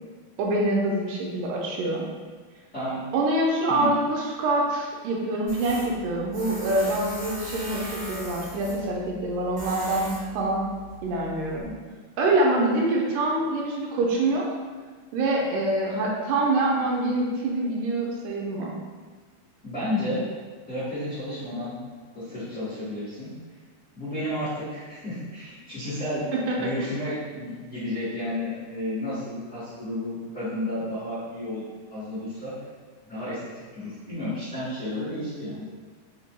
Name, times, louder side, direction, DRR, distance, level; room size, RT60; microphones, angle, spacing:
voice 1, 0.4-2.1 3.1-10.7 11.0-11.7 12.2-14.5 15.1-18.7 26.3-26.7, right 2 dB, 80° right, -2 dB, 2.0 m, -25 dB
Tools, 5.5-11.6, left 1 dB, 50° right, 0.8 m, -39 dB
voice 2, 19.6-20.2 20.7-21.8 22.1-23.3 23.9-26.2 26.6-31.6 31.9-32.5 33.0-33.4 33.7-35.6, left 1 dB, 70° left, -14 dB, 0.6 m, -32 dB
5.6 x 2.2 x 2.9 m, 1.5 s
omnidirectional pair, 3.9 m